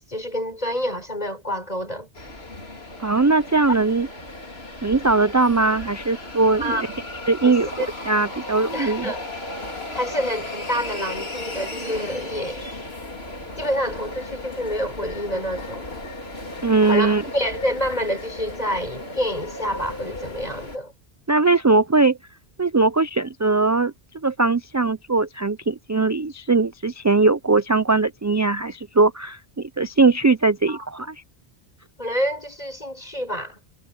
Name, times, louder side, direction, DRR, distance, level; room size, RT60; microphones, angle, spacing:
voice 1, 0.1-2.1 6.6-6.8 7.4-7.9 8.7-9.3 9.9-12.6 13.6-15.9 16.8-20.9 30.7-30.9 32.0-33.6, equal, 40° left, 7.1 m, -28 dB
sound 1, 2.1-20.8, left 2 dB, 75° left, 3.9 m, -35 dB
voice 2, 3.0-4.1 4.8-6.9 7.3-9.1 16.6-17.2 21.3-22.2 22.6-23.9 24.2-31.2, right 3 dB, 30° right, 0.3 m, -20 dB
omnidirectional pair, 1.0 m